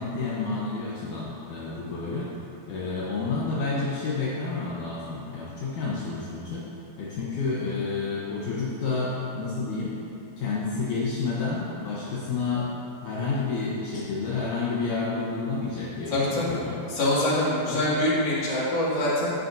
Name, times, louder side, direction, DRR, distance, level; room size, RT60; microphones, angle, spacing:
voice 1, 0.0-2.3 2.7-6.7 7.0-10.0 10.4-12.7 13.0-16.8, left 4 dB, 75° left, -7 dB, 1.8 m, -30 dB
voice 2, 16.1-16.6 16.9-19.3, left 1 dB, 35° left, -8 dB, 2.2 m, -24 dB
18.5 x 7.5 x 2.7 m, 2.8 s
omnidirectional pair, 5.0 m